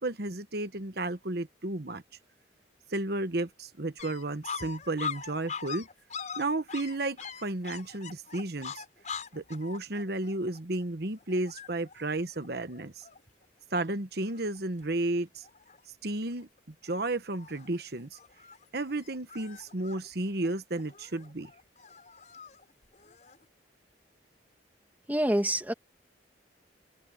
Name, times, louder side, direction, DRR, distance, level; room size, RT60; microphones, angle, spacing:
voice 1, 0.0-2.0 2.9-5.9 6.4-8.8 9.3-13.0 13.7-15.4 16.0-16.5 16.8-18.2 18.7-21.5, right 2 dB, 55° right, 1.2 m, -33 dB
sound 1, 4.0-13.4 13.9-14.0 14.2-14.9 15.1-15.8 16.3-16.6 16.9-23.5, left 6 dB, 40° left, 5.4 m, -43 dB
voice 2, 25.1-25.7, right 1 dB, 10° right, 2.0 m, -26 dB
open air
head